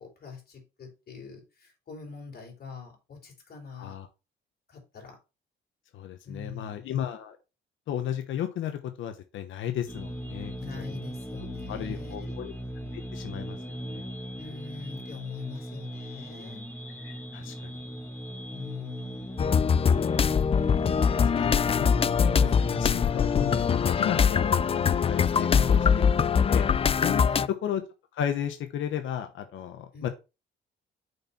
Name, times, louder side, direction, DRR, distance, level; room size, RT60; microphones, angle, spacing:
voice 1, 0.0-4.0 4.7-5.2 6.2-6.9 10.6-12.4 14.3-16.7 18.5-19.5 20.9-21.6 27.3-27.5 29.9-30.1, left 5 dB, 50° left, 4.1 m, -43 dB
voice 2, 3.7-4.1 5.9-7.4 7.9-11.0 11.4-12.5 12.9-14.0 17.0-17.8 20.9-21.9 22.2-26.7 26.9-27.8 28.1-30.1, left 10 dB, 75° left, 1.0 m, -35 dB
sound 1, 9.9-23.6, equal, 10° left, 1.5 m, -38 dB
sound 2, 19.4-27.5, left 6 dB, 30° left, 0.4 m, -23 dB
6.5 x 4.4 x 5.7 m
cardioid pair, 90°, 20 cm